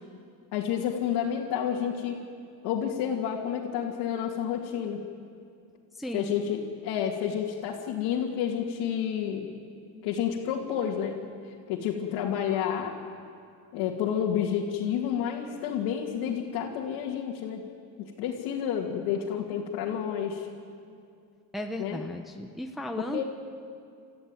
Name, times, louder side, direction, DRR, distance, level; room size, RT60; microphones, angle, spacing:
voice 1, 0.5-2.2 2.6-5.0 6.1-9.5 10.0-11.1 11.7-12.9 13.7-17.6 18.0-20.5 21.8-22.0 23.0-23.2, left 8 dB, 85° left, -3 dB, 2.5 m, -30 dB
voice 2, 6.0-6.3 21.5-23.2, equal, ahead, 3 dB, 1.1 m, -35 dB
29.5 x 14.5 x 9.8 m, 2.4 s
cardioid pair, 120°, 38 cm